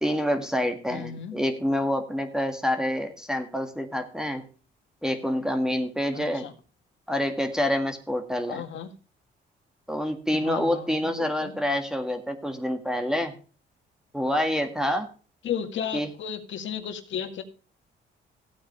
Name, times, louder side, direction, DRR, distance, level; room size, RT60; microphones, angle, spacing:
voice 1, 0.0-4.4 5.0-6.5 7.1-8.6 9.9-13.3 14.1-15.1 15.9-16.1, equal, 5° right, 6 dB, 1.8 m, -27 dB
voice 2, 0.9-1.4 6.1-6.5 8.5-8.9 10.3-11.5 15.4-17.4, left 8 dB, 70° left, 7 dB, 1.9 m, -34 dB
15.0 x 8.8 x 3.3 m, 0.35 s
cardioid pair, 90°, 20 cm